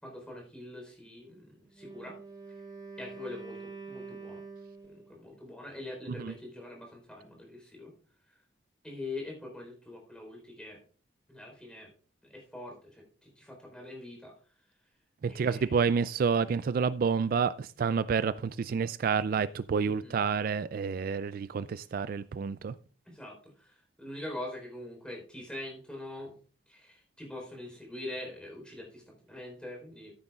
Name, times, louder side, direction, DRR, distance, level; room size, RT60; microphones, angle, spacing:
voice 1, 0.0-2.2 3.0-4.4 4.8-7.9 8.8-10.8 11.3-11.9 12.2-14.4 15.3-15.8 19.8-20.2 23.1-26.3 26.7-30.1, left 2 dB, 5° left, 3.9 m, -44 dB
Wind instrument woodwind instrument, 1.7-5.2, right 4 dB, 25° right, 4.2 m, -46 dB
voice 2, 15.2-22.7, right 6 dB, 55° right, 0.3 m, -29 dB
14.0 x 9.2 x 2.4 m
head